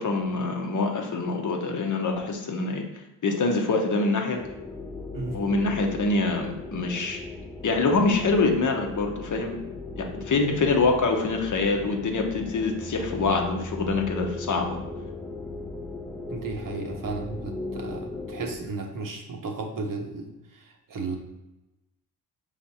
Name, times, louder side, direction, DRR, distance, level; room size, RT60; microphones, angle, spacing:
voice 1, 0.0-2.8 3.2-4.4 5.3-7.2 7.6-9.6 10.0-14.8, left 3 dB, 45° left, 3 dB, 0.8 m, -25 dB
sound 1, 4.4-18.6, left 2 dB, 5° left, 0.5 m, -37 dB
voice 2, 16.3-21.2, right 3 dB, 50° right, 2 dB, 0.8 m, -34 dB
4.7 x 3.3 x 2.8 m, 0.99 s
cardioid pair, 70°, 43 cm